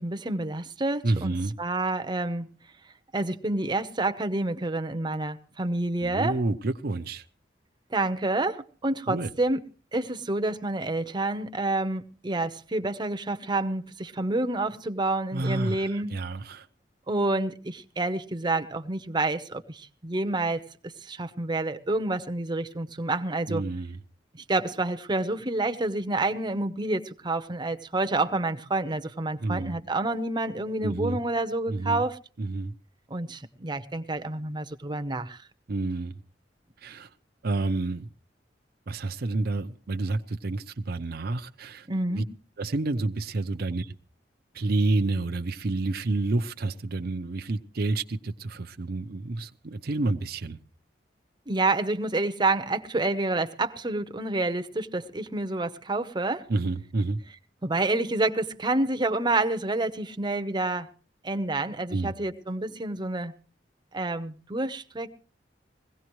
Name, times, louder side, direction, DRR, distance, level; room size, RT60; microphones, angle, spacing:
voice 1, 0.0-2.5 3.1-6.4 7.9-9.6 9.9-16.1 17.1-23.6 24.3-32.2 33.1-35.4 41.9-42.3 51.5-56.4 57.6-60.9 61.2-63.3 63.9-65.1, right 2 dB, 25° right, 0.8 m, -28 dB
voice 2, 1.0-1.5 6.0-7.2 9.1-9.3 15.3-16.6 23.5-24.0 29.4-29.8 30.8-31.2 31.7-32.0 32.4-32.7 35.7-36.1 36.8-37.1 37.4-38.1 38.9-41.9 42.1-42.2 42.6-43.9 44.5-50.6 56.5-57.2 61.9-62.1, right 2 dB, 60° right, 0.7 m, -29 dB
21.5 x 16.5 x 3.1 m
head